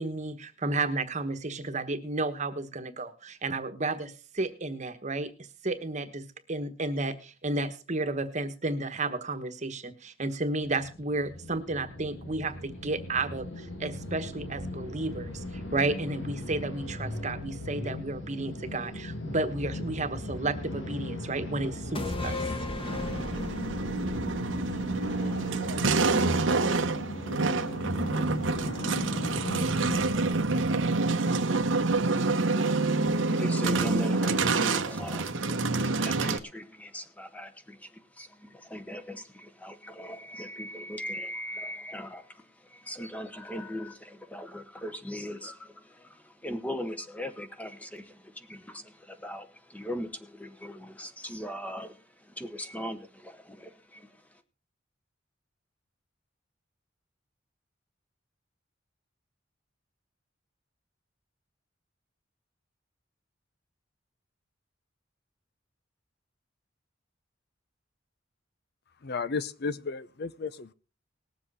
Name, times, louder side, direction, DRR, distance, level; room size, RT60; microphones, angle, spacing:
voice 1, 0.0-22.4, right 2 dB, 40° right, 1.2 m, -32 dB
sound 1, 10.6-30.1, left 1 dB, 85° left, 2.3 m, -38 dB
sound 2, 21.9-25.5 25.8-25.9, left 2 dB, 30° left, 1.4 m, -36 dB
sound 3, 22.8-36.4, right 3 dB, 90° right, 1.0 m, -27 dB
voice 2, 33.0-54.4, equal, 10° left, 1.1 m, -40 dB
voice 3, 69.0-70.7, left 4 dB, 55° left, 0.6 m, -33 dB
19.5 x 7.7 x 4.1 m
head